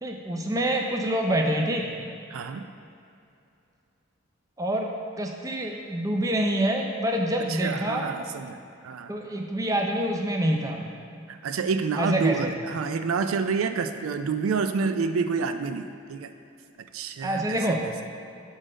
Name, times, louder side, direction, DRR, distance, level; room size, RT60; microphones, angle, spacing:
voice 1, 0.0-2.0 4.6-8.1 9.1-10.8 12.0-12.5 17.2-17.9, right 1 dB, 15° right, 2 dB, 0.4 m, -26 dB
voice 2, 2.3-2.7 7.5-8.6 8.8-9.1 11.3-16.3 16.9-17.8, right 5 dB, 90° right, 9 dB, 0.4 m, -28 dB
6.5 x 3.9 x 5.0 m, 2.6 s
head